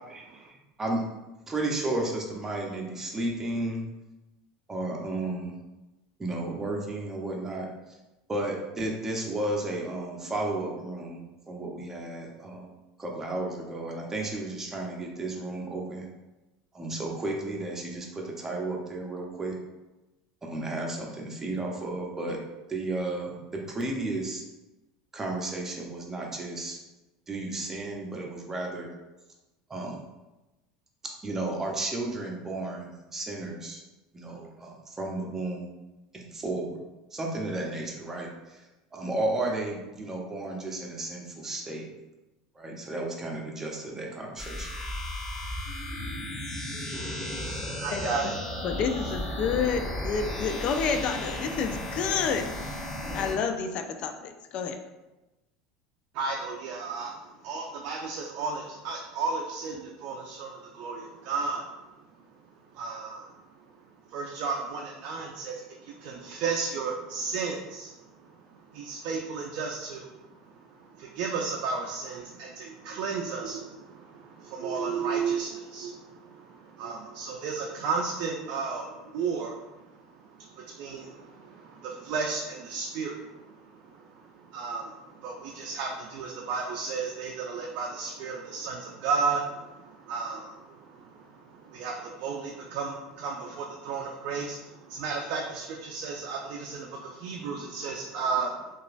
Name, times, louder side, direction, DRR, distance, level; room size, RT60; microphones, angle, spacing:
voice 1, 0.1-0.5 0.8-1.0 1.5-3.8 4.7-5.5 6.2-7.7 8.3-12.7 13.0-16.1 16.7-19.6 20.4-22.4 22.7-24.4 25.1-26.8 27.3-28.9 29.7-30.0 31.2-33.8 34.1-35.7 36.1-36.8 37.1-38.6 38.9-41.8 42.6-44.7, right 2 dB, 15° right, -1 dB, 0.6 m, -33 dB
sound 1, 44.4-53.3, left 1 dB, 15° left, 0.9 m, -34 dB
voice 2, 46.9-49.1 56.1-98.7, right 5 dB, 60° right, 0 dB, 0.4 m, -34 dB
voice 3, 48.6-52.5 53.1-54.8, left 6 dB, 50° left, 6 dB, 0.3 m, -29 dB
2.9 x 2.3 x 2.5 m, 1.0 s
supercardioid pair, 100°, 2 cm